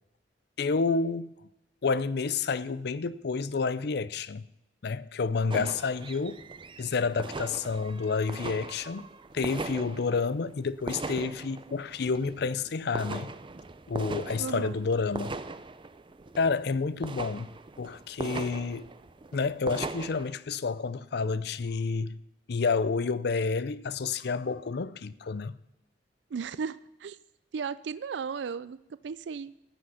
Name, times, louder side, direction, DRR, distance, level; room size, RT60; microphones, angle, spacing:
voice 1, 0.6-1.3 1.8-4.4 4.8-6.4 6.8-9.1 9.3-13.3 13.9-15.3 16.4-17.5 17.8-18.9 19.3-22.2 22.5-25.6, left 4 dB, 65° left, 0.5 m, -29 dB
sound 1, 5.5-20.3, right 3 dB, 30° right, 0.6 m, -40 dB
voice 2, 14.4-14.8 26.3-27.2 27.5-29.5, right 6 dB, 75° right, 0.4 m, -35 dB
14.5 x 7.8 x 5.6 m
head